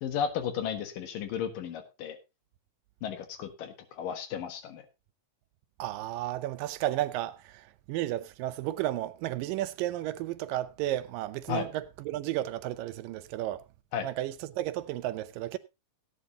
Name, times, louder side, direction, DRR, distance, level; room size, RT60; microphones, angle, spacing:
voice 1, 0.0-2.2 3.0-4.8 11.5-11.7 13.9-14.1, left 8 dB, 75° left, 3.2 m, -34 dB
voice 2, 5.8-13.6 14.0-15.6, right 14 dB, 80° right, 2.4 m, -33 dB
17.5 x 9.4 x 2.8 m
omnidirectional pair, 4.0 m